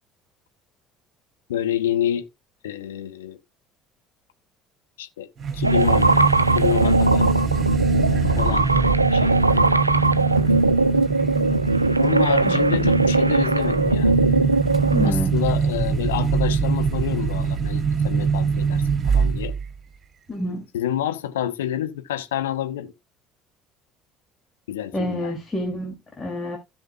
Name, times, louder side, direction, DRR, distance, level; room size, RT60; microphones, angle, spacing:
voice 1, 1.5-2.3 2.6-3.4 5.0-5.3 5.5-6.1 6.5-7.3 8.3-8.7 9.1-9.7 12.0-14.2 15.0-19.5 20.7-22.9 24.7-25.3, left 11 dB, 70° left, 1.0 m, -28 dB
sound 1, 5.4-19.7, right 5 dB, 35° right, 2.5 m, -24 dB
sound 2, 5.6-15.1, right 3 dB, 85° right, 0.4 m, -20 dB
voice 2, 12.4-12.9 14.9-15.4 20.3-20.7 24.9-26.6, left 1 dB, 20° left, 2.8 m, -28 dB
16.5 x 5.5 x 2.4 m
figure-of-eight pair, 60°, 0 cm